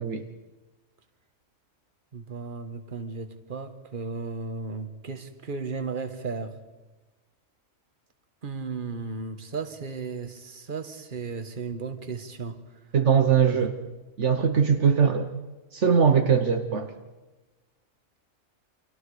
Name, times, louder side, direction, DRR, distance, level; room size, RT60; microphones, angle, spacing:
voice 1, 2.1-6.6 8.4-12.6 13.3-13.7, right 4 dB, 40° right, 7 dB, 1.6 m, -35 dB
voice 2, 12.9-13.7 14.2-15.3 15.7-16.9, right 6 dB, 65° right, 6 dB, 1.4 m, -21 dB
29.5 x 24.5 x 5.0 m, 1.2 s
omnidirectional pair, 1.3 m